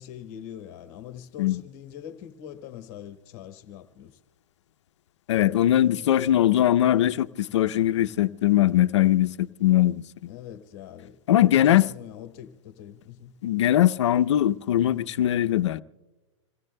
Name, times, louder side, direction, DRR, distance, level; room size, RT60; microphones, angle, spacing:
voice 1, 0.0-4.2 10.3-13.3, left 10 dB, 35° left, 1.2 m, -43 dB
voice 2, 5.3-10.3 11.3-11.9 13.4-15.8, left 12 dB, 65° left, 0.6 m, -21 dB
27.5 x 17.5 x 2.2 m
hypercardioid pair, 155°, 16 cm